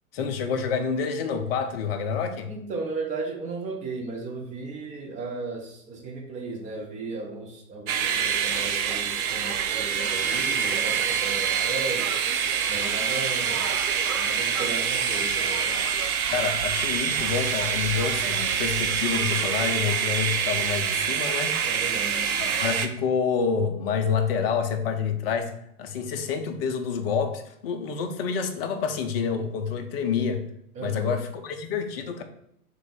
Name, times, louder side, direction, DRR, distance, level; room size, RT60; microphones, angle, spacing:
voice 1, 0.1-2.5 16.3-21.6 22.4-25.5 25.8-30.4 30.8-32.2, left 6 dB, 40° left, 6 dB, 0.6 m, -28 dB
voice 2, 2.5-12.1 12.7-13.7 14.1-15.8 21.6-22.3 30.7-31.1, right 3 dB, 15° right, 0 dB, 0.6 m, -35 dB
sound 1, 7.9-22.9, right 7 dB, 70° right, 0.6 m, -26 dB
3.4 x 3.3 x 3.8 m, 0.74 s
figure-of-eight pair, 100°, 46 cm